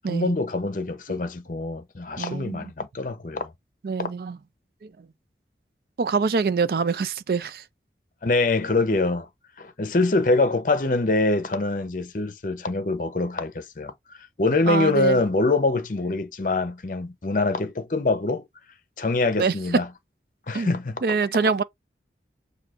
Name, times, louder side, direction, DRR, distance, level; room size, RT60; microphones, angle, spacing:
voice 1, 0.1-3.5 8.2-9.3 9.6-13.9 14.4-18.4 19.0-19.8 20.5-21.0, left 2 dB, 50° left, 0.6 m, -24 dB
voice 2, 2.2-2.7 3.8-4.4 4.8-5.1 6.0-7.6 14.7-15.2 19.4-19.8 20.5-20.7 21.0-21.6, right 4 dB, 55° right, 0.4 m, -25 dB
6.0 x 2.7 x 2.5 m
head